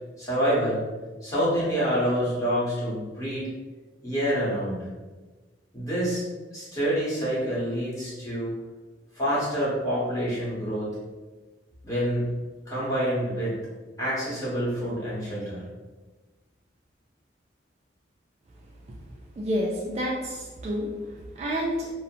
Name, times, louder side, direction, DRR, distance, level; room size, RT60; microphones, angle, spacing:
voice 1, 0.2-0.8 1.2-3.5 4.0-4.9 5.7-6.2 6.5-8.5 9.1-10.9 11.8-12.3 12.7-13.6 14.0-15.6, equal, 20° left, -8 dB, 1.0 m, -27 dB
voice 2, 19.4-20.9 21.4-21.9, equal, 35° right, -2 dB, 0.3 m, -29 dB
2.7 x 2.0 x 2.8 m, 1.3 s
head